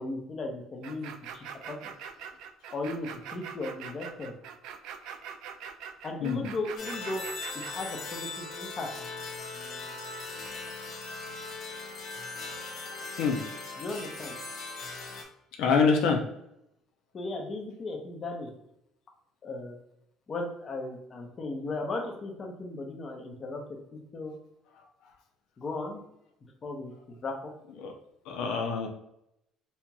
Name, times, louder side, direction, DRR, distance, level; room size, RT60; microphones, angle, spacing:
voice 1, 0.0-1.9 2.7-4.3 6.0-7.2 7.7-8.9 13.8-14.3 17.1-18.5 19.4-19.8 20.3-24.4 25.6-26.0 26.6-27.5, left 2 dB, 30° left, 1 dB, 0.7 m, -36 dB
sound 1, 0.8-7.9, right 8 dB, 75° right, 0.4 m, -43 dB
sound 2, 6.8-15.2, left 3 dB, 55° left, 1.0 m, -39 dB
voice 2, 15.6-16.2 27.8-27.9 28.3-28.9, left 5 dB, 80° left, 2 dB, 0.6 m, -25 dB
4.3 x 2.9 x 2.3 m, 0.80 s
cardioid pair, 145°, 0 cm